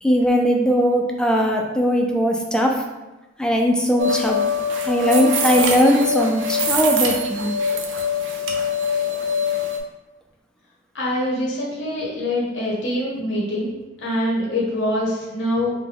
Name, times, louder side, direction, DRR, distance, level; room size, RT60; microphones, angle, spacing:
voice 1, 0.0-2.8 3.4-4.4 4.8-7.6, equal, 5° left, 1 dB, 0.4 m, -19 dB
sound 1, 4.0-9.8, left 3 dB, 85° right, 0.6 m, -23 dB
voice 2, 10.9-13.7 14.0-15.7, left 1 dB, 90° left, -5 dB, 1.0 m, -24 dB
5.2 x 2.2 x 3.4 m, 1.1 s
head